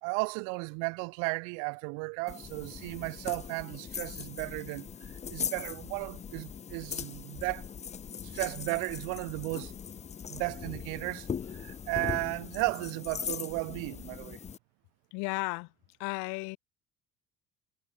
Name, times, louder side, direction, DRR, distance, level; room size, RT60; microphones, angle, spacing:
voice 1, 0.0-7.7 8.2-9.7 10.3-14.4, right 40 dB or more, 85° right, 0.7 m, -35 dB
sound 1, 2.3-14.6, left 7 dB, 25° left, 0.5 m, -40 dB
voice 2, 15.1-15.7 16.0-16.6, left 31 dB, 85° left, 1.4 m, -34 dB
supercardioid pair, 90°, 30 cm